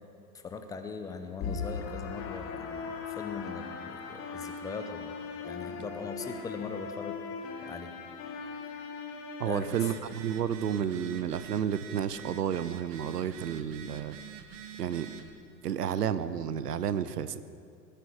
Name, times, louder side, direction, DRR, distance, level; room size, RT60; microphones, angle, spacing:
voice 1, 0.3-5.2 5.5-7.2 7.6-7.9 9.5-9.7, left 5 dB, 5° left, 8 dB, 0.6 m, -40 dB
sound 1, 1.4-10.4, left 5 dB, 25° left, 1.3 m, -39 dB
voice 2, 9.4-14.2 14.8-15.1 15.6-17.4, right 9 dB, 65° right, 14 dB, 0.8 m, -31 dB
Telephone, 9.6-15.3, right 8 dB, 45° right, 1.5 m, -46 dB
18.5 x 10.5 x 7.2 m, 2.4 s
figure-of-eight pair, 100°, 50 cm